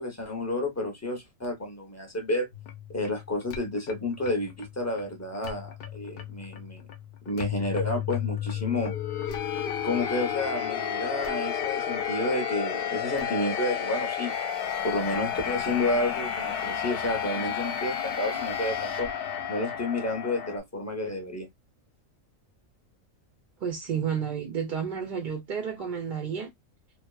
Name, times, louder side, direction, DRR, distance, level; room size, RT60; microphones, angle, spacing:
voice 1, 0.0-2.5 2.9-6.9 7.3-8.9 9.8-14.3 14.8-19.1 19.5-21.5, left 2 dB, 20° left, 0.5 m, -30 dB
sound 1, 2.5-20.6, left 8 dB, 65° left, 0.6 m, -32 dB
voice 2, 23.6-26.5, right 7 dB, 65° right, 0.5 m, -31 dB
2.7 x 2.2 x 2.2 m
omnidirectional pair, 1.4 m